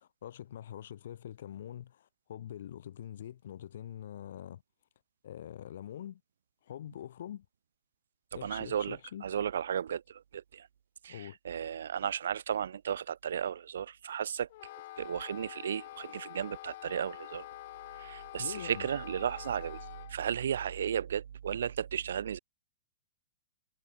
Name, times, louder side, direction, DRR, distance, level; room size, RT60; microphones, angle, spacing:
voice 1, 0.0-4.6 5.2-6.2 6.7-7.5 8.3-9.2 11.1-11.4 18.4-18.9, left 10 dB, 70° left, 0.8 m, -44 dB
voice 2, 8.3-10.7 11.0-14.5 15.0-17.5 18.0-22.4, right 8 dB, 85° right, 1.4 m, -34 dB
Wind instrument woodwind instrument, 14.5-20.1, left 16 dB, 55° left, 1.3 m, -47 dB
hypercardioid pair, 145°, 0 cm